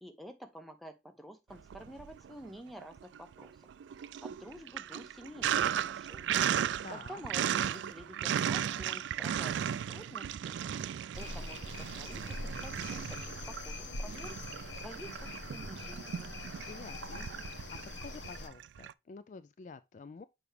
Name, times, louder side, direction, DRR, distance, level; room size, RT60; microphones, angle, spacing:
voice 1, 0.0-3.6 4.2-6.3 6.9-10.7 11.2-14.4 14.8-16.3, equal, ahead, 0.7 m, -49 dB
Sink (filling or washing), 1.6-2.5 2.8-18.9, right 9 dB, 80° right, 0.3 m, -36 dB
voice 2, 6.8-7.2 16.7-20.2, left 4 dB, 40° left, 0.3 m, -49 dB
sound 1, 11.1-18.5, left 2 dB, 80° left, 1.1 m, -43 dB
7.0 x 4.6 x 3.2 m
head